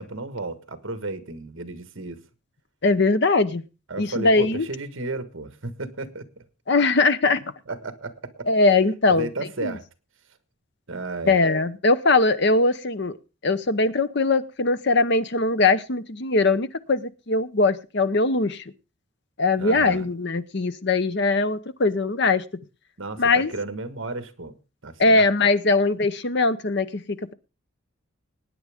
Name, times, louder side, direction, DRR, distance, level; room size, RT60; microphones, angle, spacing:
voice 1, 0.0-2.2 3.9-6.4 7.7-8.5 9.1-9.8 10.9-11.3 19.6-20.1 23.0-24.5 24.8-25.2, right 3 dB, 65° right, 10 dB, 1.5 m, -33 dB
voice 2, 2.8-3.6 4.0-4.7 6.7-7.4 8.5-9.3 9.6-9.8 11.3-13.2 13.4-18.6 19.4-22.4 23.2-23.5 25.0-27.3, left 3 dB, 50° left, 12 dB, 0.8 m, -21 dB
20.0 x 9.5 x 3.6 m, 0.32 s
head